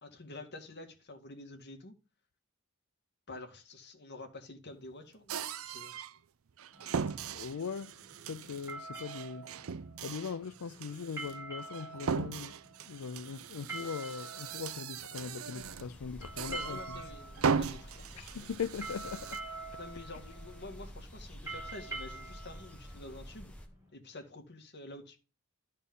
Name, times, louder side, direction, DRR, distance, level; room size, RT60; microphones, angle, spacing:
voice 1, 0.0-1.9 3.3-6.0 16.5-18.5 19.8-23.5 23.9-25.2, left 2 dB, 50° left, 1.9 m, -48 dB
sound 1, 5.3-6.2 6.6-16.0 16.4-17.1 17.4-19.4, right 6 dB, 70° right, 0.5 m, -38 dB
sound 2, 6.7-23.9, right 3 dB, 10° right, 3.1 m, -46 dB
voice 2, 7.3-7.9 8.3-9.5 10.0-16.8 18.2-19.4, left 6 dB, 80° left, 0.5 m, -40 dB
sound 3, 15.6-23.7, equal, 5° left, 1.6 m, -50 dB
12.5 x 4.4 x 5.3 m
head